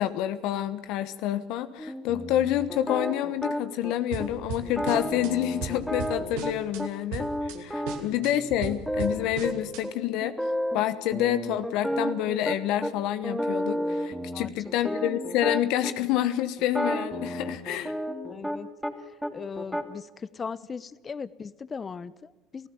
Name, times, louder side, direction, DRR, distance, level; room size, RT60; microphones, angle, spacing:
voice 1, 0.0-10.4 10.7-17.9, left 12 dB, 65° left, 12 dB, 1.0 m, -28 dB
sound 1, 1.8-3.9 4.2-4.3 4.6-6.9 7.2-9.5 9.8-9.9 10.2-10.8 11.1-12.9 13.2-15.9 16.6-18.9 19.2-19.8, equal, ahead, 2.6 m, -31 dB
sound 2, 4.1-5.3 5.6-6.8 7.1-7.6 7.9-9.8, right 6 dB, 75° right, 2.6 m, -37 dB
voice 2, 18.3-18.7 19.3-22.7, left 5 dB, 30° left, 18 dB, 1.0 m, -38 dB
29.5 x 15.5 x 7.0 m, 1.1 s
hypercardioid pair, 75°, 0 cm